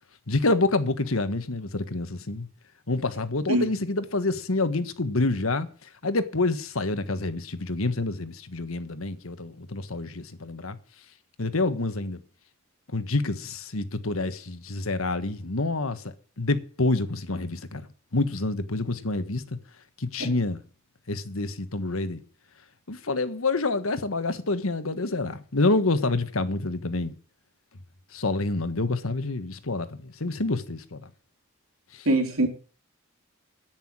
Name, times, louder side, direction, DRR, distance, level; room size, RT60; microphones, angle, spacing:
voice 1, 0.3-2.5 2.9-5.7 6.0-10.8 11.4-12.2 12.9-17.9 18.1-19.4 20.0-20.6 21.1-22.2 22.9-27.1 28.1-31.0 32.0-32.1, left 2 dB, 85° left, 1.5 m, -27 dB
voice 2, 32.1-32.5, right 1 dB, 90° right, 3.8 m, -22 dB
10.5 x 9.3 x 7.7 m
head